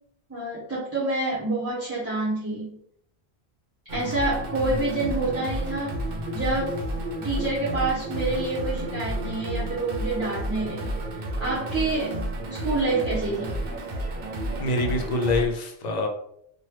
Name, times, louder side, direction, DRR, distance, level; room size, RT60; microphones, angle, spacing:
voice 1, 0.3-2.7 3.9-6.0 6.3-6.8 7.2-10.9 11.4-12.2 12.5-13.6, right 2 dB, 15° right, -9 dB, 0.7 m, -27 dB
sound 1, 3.9-15.5, right 1 dB, 65° right, 0.7 m, -31 dB
voice 2, 14.6-16.1, left 2 dB, 50° left, 3 dB, 0.5 m, -25 dB
3.0 x 2.2 x 3.1 m, 0.68 s
omnidirectional pair, 1.1 m